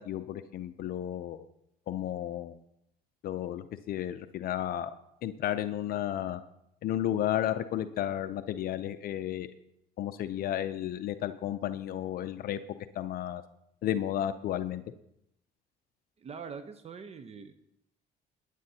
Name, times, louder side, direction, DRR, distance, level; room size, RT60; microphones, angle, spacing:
voice 1, 0.0-1.4 1.9-2.6 3.2-4.9 5.2-6.4 6.8-9.5 10.0-12.6 12.9-13.4 13.8-14.8, left 11 dB, 60° left, 10 dB, 0.6 m, -33 dB
voice 2, 16.2-17.5, right 6 dB, 40° right, 10 dB, 0.8 m, -43 dB
20.5 x 9.8 x 2.8 m, 0.80 s
cardioid pair, 110°, 17 cm